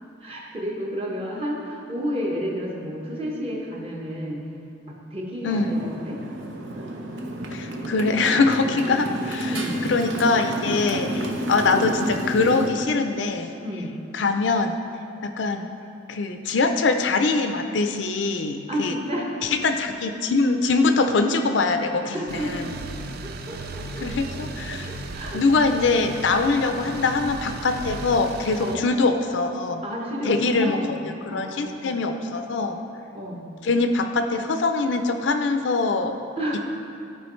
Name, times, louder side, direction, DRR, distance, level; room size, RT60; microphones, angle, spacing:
voice 1, 0.2-4.4 4.9-6.2 9.5-9.8 13.6-13.9 18.7-19.6 22.0-22.7 23.2-24.1 24.9-25.4 26.6-26.9 28.6-28.8 29.8-31.0 31.3-32.7 33.1-33.4 36.4-36.6, equal, 30° right, -3 dB, 1.3 m, -31 dB
Motorcycle, 5.5-12.7, right 1 dB, 80° right, 0.8 m, -30 dB
voice 2, 7.5-9.5 9.8-13.5 14.1-14.8 15.2-15.7 16.1-18.9 19.6-22.1 24.0-24.9 25.3-29.8 30.3-30.8 31.3-32.8 33.6-36.1, left 3 dB, 75° left, 6 dB, 0.5 m, -23 dB
sound 1, 22.3-28.8, right 2 dB, 55° right, 0.4 m, -36 dB
13.0 x 4.7 x 3.2 m, 2.6 s
head